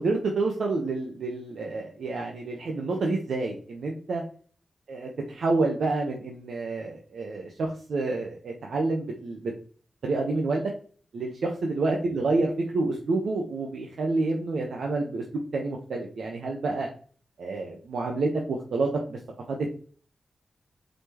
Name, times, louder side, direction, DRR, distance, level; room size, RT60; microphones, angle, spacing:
voice 1, 0.0-4.2 4.9-9.5 10.0-10.7 11.1-15.2 15.5-16.9 17.4-19.2 19.5-19.7, right 3 dB, 85° right, 0 dB, 1.0 m, -28 dB
7.9 x 4.3 x 2.9 m, 0.44 s
cardioid pair, 65°, 0 cm